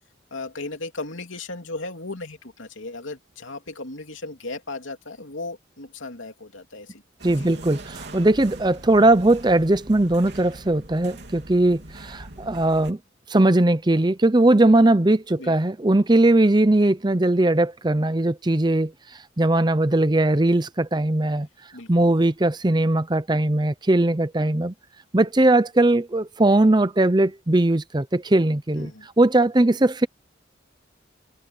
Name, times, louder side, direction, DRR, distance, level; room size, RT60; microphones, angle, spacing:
voice 1, 0.3-7.0 7.4-7.7 15.4-15.6 21.7-21.9 28.7-29.1, left 2 dB, 85° left, 3.0 m, -36 dB
voice 2, 7.2-13.0 13.3-18.9 19.4-21.5 21.9-24.7 25.1-28.9 29.2-30.1, right 2 dB, 20° right, 0.7 m, -19 dB
sound 1, 7.2-12.9, right 1 dB, 60° right, 3.8 m, -41 dB
head